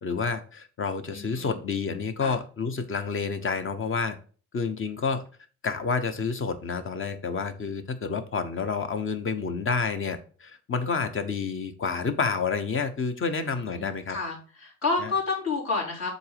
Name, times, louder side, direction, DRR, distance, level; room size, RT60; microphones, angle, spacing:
voice 1, 0.0-4.2 4.5-5.2 5.6-14.2 15.0-15.1, left 5 dB, 45° left, 9 dB, 1.0 m, -29 dB
voice 2, 1.1-1.6 2.2-2.4 13.2-16.1, left 3 dB, 60° left, -2 dB, 3.2 m, -30 dB
6.8 x 4.0 x 5.0 m, 0.39 s
cardioid pair, 90°, 30 cm